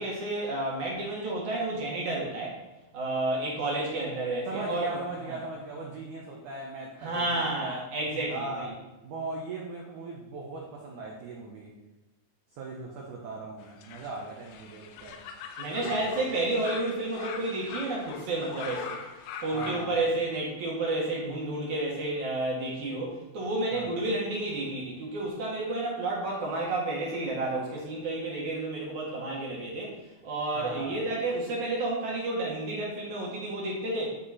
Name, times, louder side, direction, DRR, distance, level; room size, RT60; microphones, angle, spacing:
voice 1, 0.0-2.6 2.9-5.0 5.3-5.4 7.0-8.7 15.6-19.0 19.4-30.0 30.2-34.1, right 2 dB, 55° right, -3 dB, 2.3 m, -31 dB
voice 2, 4.5-7.8 8.3-8.7 9.0-11.7 12.5-15.2 15.8-16.2 19.5-20.0 23.7-23.9 30.5-31.0, right 3 dB, 80° right, -2 dB, 1.7 m, -39 dB
sound 1, 13.6-19.9, left 6 dB, 80° left, 2.7 m, -41 dB
11.5 x 4.9 x 4.2 m, 1.0 s
omnidirectional pair, 5.2 m